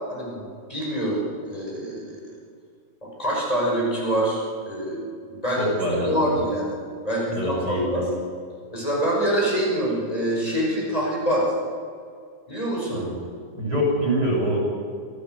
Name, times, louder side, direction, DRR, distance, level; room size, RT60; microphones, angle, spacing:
voice 1, 0.1-0.4 0.7-2.3 3.0-5.0 5.3-6.8 7.0-8.1 8.7-11.5 12.5-13.0, right 1 dB, 20° left, -4 dB, 6.0 m, -25 dB
voice 2, 5.6-6.4 7.4-8.0 12.9-13.1 13.6-14.8, equal, 60° right, -1 dB, 7.1 m, -25 dB
27.0 x 14.0 x 8.0 m, 2.2 s
omnidirectional pair, 2.0 m